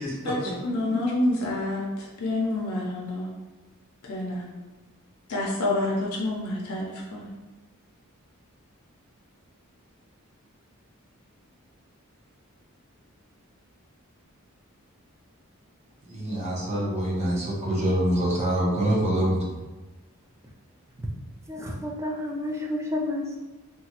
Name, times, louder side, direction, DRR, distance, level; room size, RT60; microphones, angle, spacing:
voice 1, 0.0-0.5 16.1-19.6, right 1 dB, 30° right, -4 dB, 0.7 m, -25 dB
voice 2, 0.6-3.3 4.0-4.5 5.3-7.3, left 2 dB, 80° left, -2 dB, 0.5 m, -28 dB
voice 3, 21.5-23.4, left 1 dB, 15° right, -1 dB, 0.3 m, -30 dB
2.9 x 2.2 x 2.8 m, 1.2 s
head